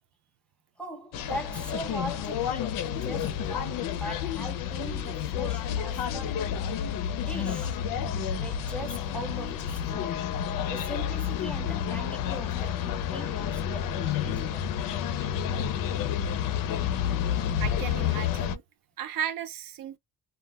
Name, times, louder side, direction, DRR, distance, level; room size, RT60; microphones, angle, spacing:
voice 1, 0.8-6.9 7.3-7.8 8.4-10.3 10.7-14.7, right 1 dB, 5° left, 0.3 m, -41 dB
sound 1, 1.1-18.6, left 9 dB, 80° left, 0.5 m, -30 dB
voice 2, 17.6-18.6 19.0-20.0, right 10 dB, 80° right, 0.6 m, -35 dB
2.2 x 2.1 x 3.3 m
cardioid pair, 180°, 33 cm